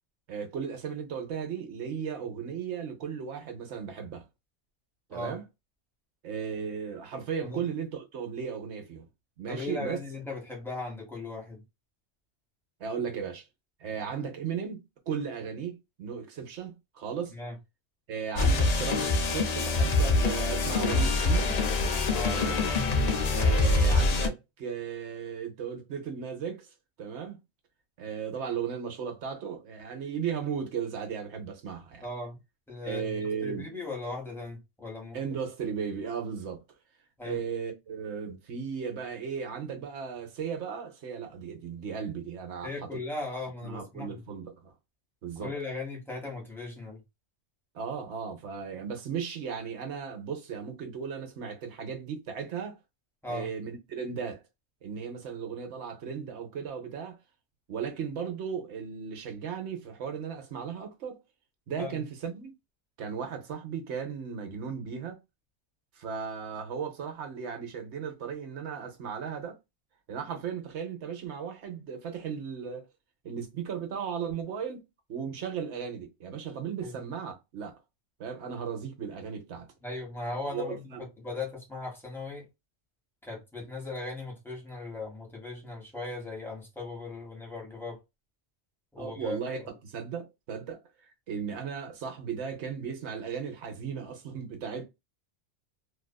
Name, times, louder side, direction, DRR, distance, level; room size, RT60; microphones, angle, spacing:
voice 1, 0.3-4.2 5.1-5.4 6.2-9.1 9.4-10.0 12.8-13.5 13.8-17.3 18.1-21.6 22.3-22.6 23.3-26.7 27.0-27.4 28.0-32.1 32.8-33.7 35.1-36.6 37.2-42.9 43.6-44.7 45.2-45.5 47.7-52.8 53.3-54.4 54.8-57.2 57.7-61.2 61.7-62.5 63.0-65.2 66.0-69.6 70.1-72.9 73.2-77.8 78.2-79.7 80.5-81.1 89.0-90.8 91.3-94.8, right 7 dB, 70° right, 1.0 m, -36 dB
voice 2, 9.5-11.6 17.3-17.5 22.1-22.4 32.0-32.4 32.7-35.2 37.2-37.4 42.6-44.2 45.4-47.0 53.2-53.5 61.8-62.0 76.8-77.0 79.8-80.8 81.2-82.5 83.2-88.0 88.9-89.7, left 3 dB, ahead, 1.0 m, -38 dB
sound 1, 18.4-24.3, left 3 dB, 60° left, 0.4 m, -25 dB
2.7 x 2.4 x 2.2 m
omnidirectional pair, 1.2 m